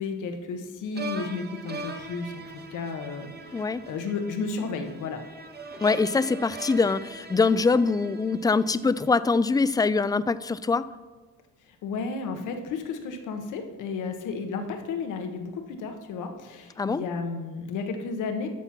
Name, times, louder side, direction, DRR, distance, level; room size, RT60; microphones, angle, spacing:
voice 1, 0.0-2.4 2.7-5.2 11.8-15.5 15.8-18.5, left 4 dB, 85° left, 5 dB, 1.2 m, -33 dB
sound 1, 0.9-9.1, right 2 dB, 35° right, 1.1 m, -41 dB
voice 2, 3.5-3.8 5.8-10.8 16.8-17.0, left 4 dB, 15° left, 16 dB, 0.3 m, -23 dB
12.5 x 4.3 x 5.9 m, 1.3 s
cardioid pair, 90°, 30 cm